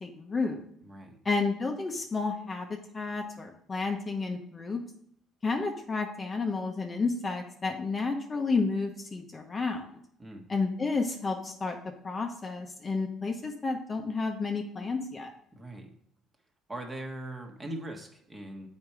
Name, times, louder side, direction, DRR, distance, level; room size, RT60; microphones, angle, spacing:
voice 1, 0.0-0.6 1.2-4.8 5.4-9.9 10.5-11.8 12.0-15.3, left 4 dB, 25° left, 3 dB, 0.9 m, -31 dB
voice 2, 0.8-1.2 10.2-10.5 15.5-15.9 16.7-18.7, right 1 dB, 15° right, 2 dB, 1.4 m, -40 dB
7.9 x 4.3 x 4.8 m, 0.71 s
cardioid pair, 120°, 0 cm